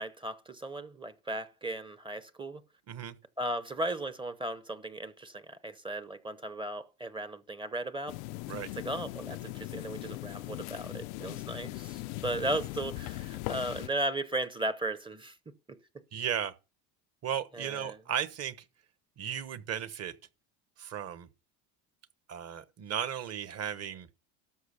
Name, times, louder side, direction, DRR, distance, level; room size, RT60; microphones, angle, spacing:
voice 1, 0.0-2.6 3.4-8.2 8.7-15.4 17.5-18.0, right 1 dB, 10° right, 0.7 m, -36 dB
sound 1, 8.1-13.9, left 20 dB, 90° left, 0.6 m, -39 dB
voice 2, 16.1-16.5 17.2-18.6 19.2-20.1 20.8-21.3 22.3-24.1, right 9 dB, 40° right, 1.2 m, -35 dB
13.0 x 6.2 x 6.6 m
cardioid pair, 125°, 40 cm